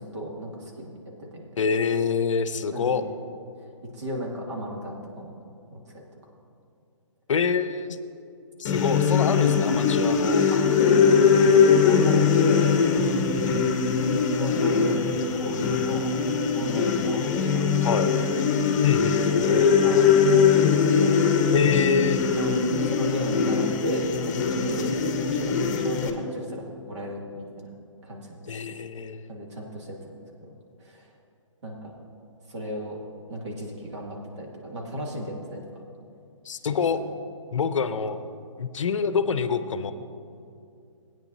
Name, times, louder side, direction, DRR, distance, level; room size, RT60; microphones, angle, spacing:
voice 1, 0.0-1.5 2.7-3.0 3.8-5.3 5.7-6.0 10.5-10.8 11.2-13.1 14.3-16.2 16.5-17.9 18.2-18.4 19.3-20.7 20.9-21.2 22.4-22.6 22.8-24.9 25.2-27.7 28.0-28.4 29.3-30.0 30.4-30.5 30.8-31.1 31.6-31.9 32.5-33.0 33.3-35.8 36.6-36.8, equal, 60° right, -1 dB, 2.2 m, -35 dB
voice 2, 1.6-3.0 7.3-8.0 8.6-10.4 13.3-13.7 17.8-18.1 18.8-19.2 21.5-22.2 28.5-29.2 36.4-37.0 37.5-38.2 38.6-39.9, left 6 dB, 70° left, 11 dB, 0.6 m, -26 dB
sound 1, 8.6-26.1, left 6 dB, 35° left, 0.9 m, -21 dB
16.5 x 9.1 x 2.7 m, 2.5 s
hypercardioid pair, 150°, 17 cm